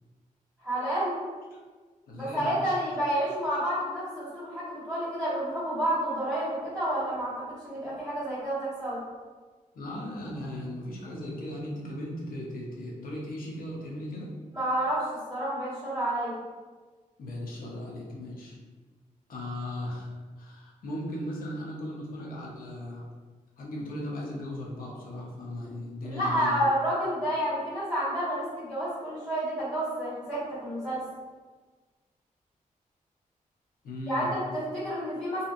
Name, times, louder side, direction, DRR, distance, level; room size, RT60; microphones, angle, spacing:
voice 1, 0.6-1.2 2.1-9.0 14.5-16.3 26.0-31.0 34.1-35.4, right 1 dB, 5° left, -12 dB, 1.5 m, -30 dB
voice 2, 2.1-2.8 9.7-14.3 17.2-18.6 19.3-23.0 23.6-26.6 33.8-34.3, left 1 dB, 80° left, -3 dB, 0.7 m, -37 dB
2.8 x 2.5 x 2.5 m, 1.4 s
wide cardioid pair, 130°, 15 cm